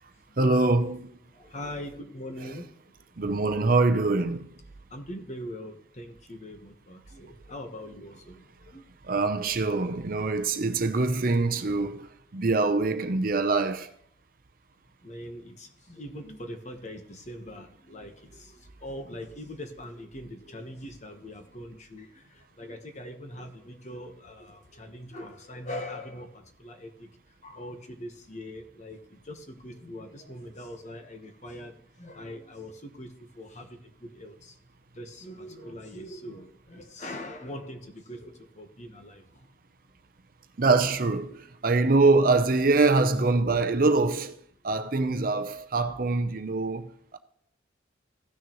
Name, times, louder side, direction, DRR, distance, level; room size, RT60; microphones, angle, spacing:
voice 1, 0.4-1.2 3.2-4.5 9.0-13.9 40.6-44.4 44.6-47.2, right 3 dB, 45° right, 0.6 m, -24 dB
voice 2, 1.3-2.8 4.9-8.8 15.0-27.1 27.4-34.6 34.9-39.5, left 1 dB, 35° left, 1.2 m, -42 dB
15.5 x 6.5 x 3.1 m
head